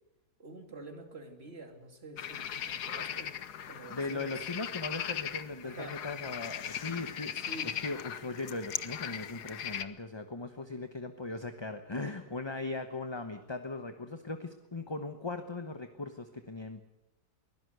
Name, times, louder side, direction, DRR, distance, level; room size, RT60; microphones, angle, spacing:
voice 1, 0.4-3.3 3.6-4.4 5.6-6.0 7.5-7.8, right 2 dB, 40° right, 5 dB, 2.9 m, -47 dB
sound 1, 2.2-9.8, left 9 dB, 90° left, 1.6 m, -38 dB
voice 2, 3.9-16.8, left 3 dB, 20° left, 8 dB, 1.0 m, -39 dB
23.0 x 16.5 x 8.0 m, 0.99 s
omnidirectional pair, 1.7 m